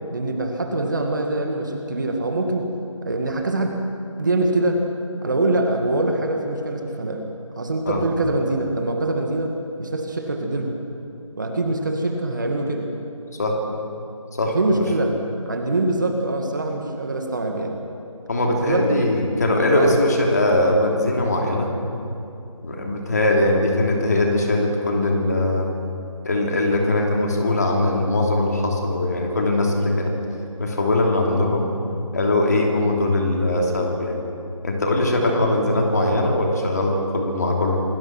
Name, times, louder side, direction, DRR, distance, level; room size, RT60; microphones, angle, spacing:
voice 1, 0.1-2.7 3.0-3.7 4.2-4.8 5.2-7.3 7.6-9.5 9.8-10.8 11.4-12.9 14.5-15.2 15.5-17.8 18.5-19.1 19.7-20.0 35.3-35.4, right 2 dB, 35° right, 3 dB, 2.1 m, -24 dB
voice 2, 14.4-14.9 18.3-21.7 22.6-25.7 26.2-30.1 30.6-31.7 32.1-34.2 34.6-37.8, left 1 dB, 30° left, 0 dB, 3.0 m, -21 dB
27.0 x 19.5 x 6.1 m, 2.6 s
figure-of-eight pair, 175°, 17 cm